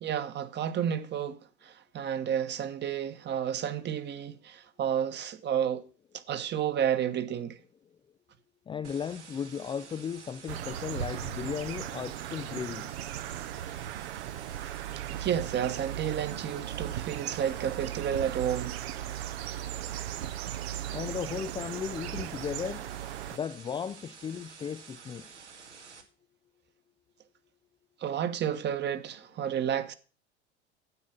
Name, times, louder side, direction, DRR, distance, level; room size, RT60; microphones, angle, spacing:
voice 1, 0.0-5.8 6.3-7.6 15.1-18.8 28.0-29.9, right 9 dB, 30° right, 1.3 m, -31 dB
voice 2, 8.7-12.9 20.9-22.9 23.3-25.3, left 7 dB, 15° left, 0.4 m, -36 dB
sound 1, 8.8-26.0, right 5 dB, 80° right, 2.2 m, -51 dB
sound 2, 10.5-23.4, right 12 dB, 60° right, 0.9 m, -37 dB
9.7 x 8.6 x 5.8 m
figure-of-eight pair, 85°, 34 cm